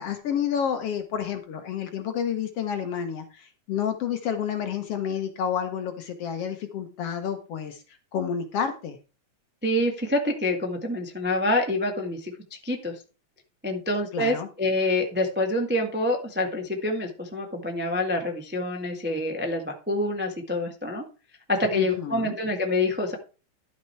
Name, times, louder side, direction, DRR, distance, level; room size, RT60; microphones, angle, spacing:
voice 1, 0.0-7.8 8.1-9.0 14.1-14.5 21.7-22.3, left 8 dB, 65° left, 7 dB, 1.7 m, -30 dB
voice 2, 9.6-12.9 13.6-21.0 21.5-23.2, left 1 dB, 10° right, 2 dB, 0.6 m, -26 dB
12.0 x 6.0 x 4.5 m, 0.33 s
omnidirectional pair, 3.5 m